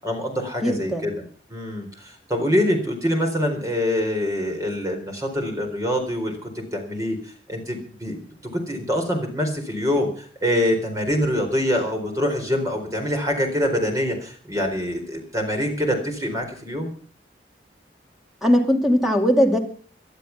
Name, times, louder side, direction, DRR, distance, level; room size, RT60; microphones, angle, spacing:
voice 1, 0.0-1.1 1.5-8.2 8.5-16.9, equal, 20° right, 3 dB, 4.1 m, -25 dB
voice 2, 0.6-1.2 18.4-19.6, equal, ahead, 3 dB, 2.6 m, -19 dB
19.5 x 11.5 x 5.9 m, 0.43 s
head